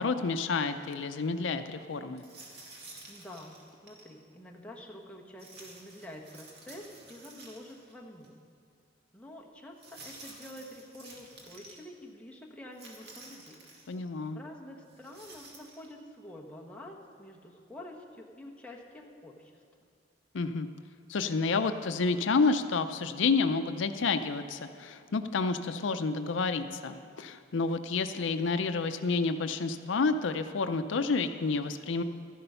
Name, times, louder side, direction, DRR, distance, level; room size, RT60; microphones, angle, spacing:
voice 1, 0.0-2.2 13.9-14.4 20.3-20.7 21.1-32.0, left 4 dB, 75° left, 9 dB, 0.5 m, -29 dB
sound 1, 2.2-4.1 5.4-7.9 8.2-8.3 9.8-11.8 12.7-13.9 14.9-15.9, right 2 dB, 60° right, 2.1 m, -51 dB
voice 2, 3.1-8.4 9.1-13.6 14.3-19.6, left 1 dB, 5° left, -1 dB, 1.2 m, -48 dB
13.5 x 11.0 x 5.6 m, 2.3 s
head